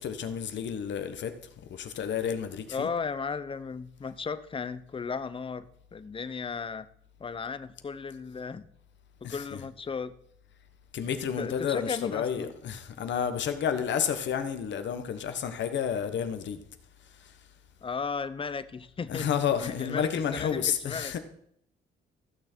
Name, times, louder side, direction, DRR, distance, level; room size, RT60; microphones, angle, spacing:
voice 1, 0.0-1.3 1.7-2.9 9.2-9.6 10.9-16.6 17.1-17.3 19.1-21.2, left 8 dB, 65° left, 1.2 m, -31 dB
voice 2, 2.7-6.9 7.2-8.7 9.2-10.1 11.1-12.5 17.8-19.3 19.6-21.1, left 5 dB, 25° left, 0.7 m, -35 dB
15.0 x 6.5 x 4.4 m
cardioid pair, 90°, 20 cm